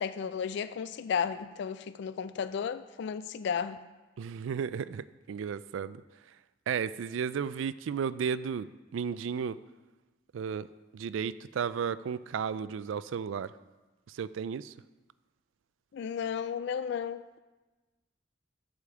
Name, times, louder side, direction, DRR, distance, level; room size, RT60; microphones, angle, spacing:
voice 1, 0.0-3.8 15.9-17.4, left 7 dB, 60° left, 13 dB, 0.3 m, -33 dB
voice 2, 4.2-6.0 6.7-8.7 8.9-9.6 10.3-10.7 10.9-13.5 14.1-14.7, right 7 dB, 75° right, 17 dB, 0.3 m, -33 dB
8.3 x 5.1 x 7.3 m, 1.2 s
head